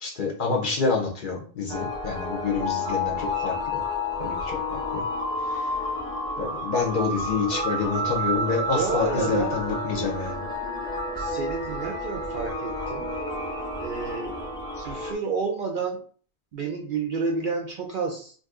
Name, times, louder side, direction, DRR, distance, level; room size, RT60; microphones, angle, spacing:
voice 1, 0.0-3.8 4.2-5.0 5.4-5.8 6.4-10.4, left 5 dB, 55° left, 1 dB, 0.7 m, -28 dB
sound 1, 1.7-15.1, left 1 dB, 5° left, 0.6 m, -30 dB
voice 2, 8.7-9.6 11.2-13.1 13.8-14.4 14.8-16.0 16.5-18.3, right 4 dB, 60° right, 2 dB, 0.6 m, -30 dB
2.6 x 2.5 x 3.5 m, 0.43 s
omnidirectional pair, 1.2 m